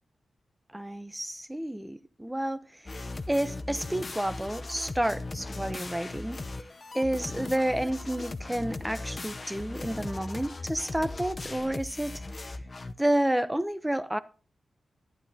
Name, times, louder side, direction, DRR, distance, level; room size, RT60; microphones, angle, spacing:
voice 1, 0.7-3.0 3.3-6.4 6.9-12.6 13.0-14.2, right 1 dB, 10° right, 0.7 m, -30 dB
sound 1, 2.9-12.9, left 2 dB, 35° left, 0.7 m, -38 dB
11.5 x 10.5 x 2.8 m
cardioid pair, 85°, 0 cm